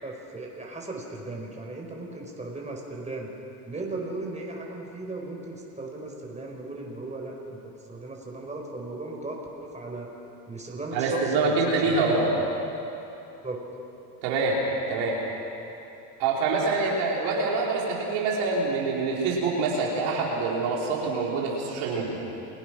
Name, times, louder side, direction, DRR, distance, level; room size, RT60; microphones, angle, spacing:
voice 1, 0.0-3.3 3.7-7.6 7.9-10.1 10.5-11.5 11.8-12.0 13.4-13.6, right 2 dB, 15° right, 0 dB, 5.0 m, -36 dB
voice 2, 10.9-12.3 14.2-14.6 14.9-15.2 16.2-22.2, right 3 dB, 70° right, -3 dB, 5.0 m, -25 dB
29.0 x 17.5 x 6.3 m, 2.9 s
hypercardioid pair, 90°, 46 cm